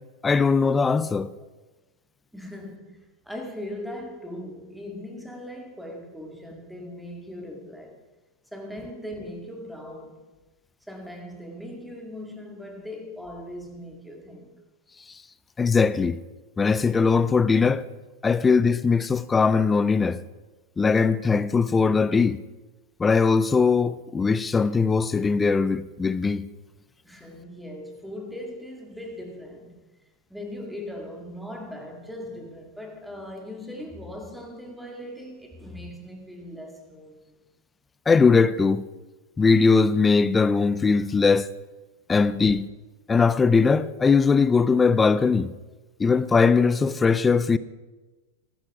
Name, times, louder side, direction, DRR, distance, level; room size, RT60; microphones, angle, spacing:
voice 1, 0.2-1.3 15.6-16.2 16.6-17.8 18.2-20.2 20.8-22.4 23.0-26.5 38.1-38.8 39.4-41.5 42.1-42.7 43.1-45.5 46.0-47.6, left 5 dB, 15° left, 0.5 m, -20 dB
voice 2, 2.3-8.0 8.5-10.2 10.9-14.5 27.0-29.8 30.3-37.3, left 1 dB, ahead, 2.1 m, -39 dB
14.5 x 12.0 x 4.9 m
supercardioid pair, 135°, 0 cm